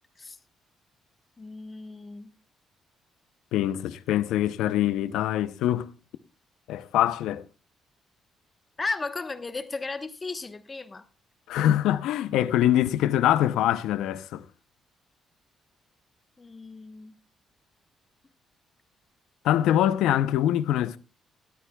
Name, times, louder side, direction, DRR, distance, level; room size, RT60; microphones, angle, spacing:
voice 1, 1.4-2.3 8.8-11.0 16.4-17.1, left 3 dB, 25° left, 1.1 m, -35 dB
voice 2, 3.5-5.9 6.7-7.4 11.5-14.4 19.4-21.0, left 12 dB, 90° left, 0.6 m, -24 dB
18.5 x 13.0 x 2.3 m
cardioid pair, 90°, 0 cm